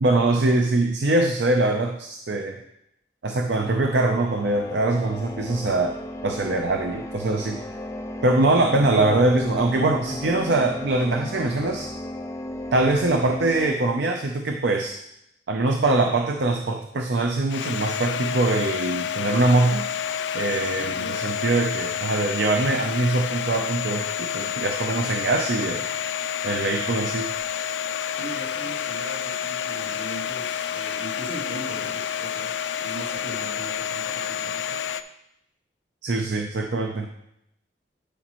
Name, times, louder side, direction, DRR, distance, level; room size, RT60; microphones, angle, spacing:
voice 1, 0.0-2.6 3.2-6.0 6.2-7.6 8.2-11.9 12.7-15.0 15.5-19.9 20.3-25.8 26.4-27.3 36.0-37.1, right 2 dB, 75° right, 3 dB, 0.6 m, -23 dB
sound 1, 3.5-13.8, left 1 dB, 15° left, 0.5 m, -35 dB
Domestic sounds home sounds, 17.5-35.0, left 8 dB, 80° left, 0.4 m, -29 dB
voice 2, 20.7-21.5 28.1-34.8, right 1 dB, 90° right, -5 dB, 2.6 m, -39 dB
11.5 x 5.1 x 3.0 m, 0.80 s
head